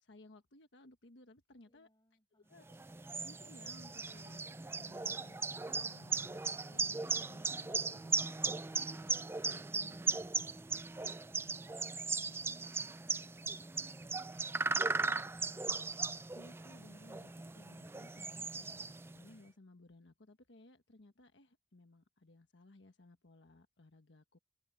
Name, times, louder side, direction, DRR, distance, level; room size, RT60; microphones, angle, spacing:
voice 1, 0.0-1.9 2.5-2.8 3.2-5.4 5.7-8.4 8.7-9.1 9.8-10.0 16.3-24.4, left 2 dB, 80° left, 1.3 m, -60 dB
voice 2, 1.7-2.7 11.2-15.4, left 1 dB, 20° left, 7.2 m, -73 dB
sound 1, 2.7-19.2, right 4 dB, 15° right, 0.4 m, -38 dB
open air
head